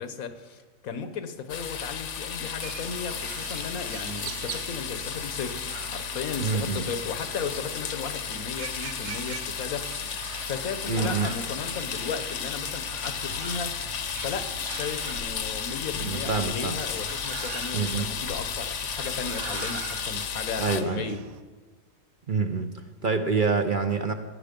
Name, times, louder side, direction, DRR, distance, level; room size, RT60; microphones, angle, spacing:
voice 1, 0.0-10.2 10.4-13.8 14.2-21.2, left 5 dB, 80° left, 9 dB, 1.5 m, -35 dB
sound 1, 1.5-20.8, left 7 dB, 60° left, 1.2 m, -33 dB
sound 2, 2.6-21.4, right 8 dB, 80° right, 1.2 m, -43 dB
voice 2, 6.4-6.8 10.9-11.3 16.0-16.8 17.7-18.1 20.6-21.1 22.3-24.1, right 4 dB, 45° right, 7 dB, 0.8 m, -27 dB
15.5 x 9.6 x 5.2 m, 1.4 s
omnidirectional pair, 1.5 m